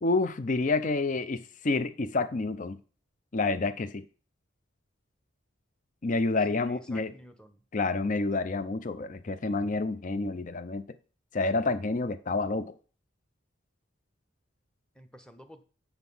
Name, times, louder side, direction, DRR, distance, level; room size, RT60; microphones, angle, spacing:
voice 1, 0.0-2.8 3.3-4.0 6.0-7.1 7.7-10.8 11.3-12.7, left 3 dB, 40° left, 0.5 m, -28 dB
voice 2, 6.5-7.6 14.9-15.7, equal, 5° left, 0.8 m, -51 dB
8.0 x 6.9 x 5.5 m
head